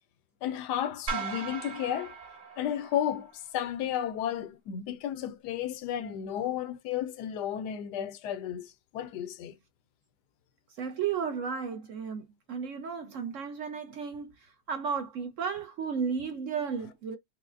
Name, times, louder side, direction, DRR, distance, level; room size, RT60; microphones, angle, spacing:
voice 1, 0.4-2.1 2.6-9.5, left 10 dB, 75° left, 1.1 m, -33 dB
sound 1, 1.1-3.4, right 5 dB, 40° right, 1.3 m, -38 dB
voice 2, 10.8-14.3 14.7-17.2, right 6 dB, 65° right, 0.8 m, -33 dB
4.8 x 2.1 x 2.4 m
omnidirectional pair, 1.8 m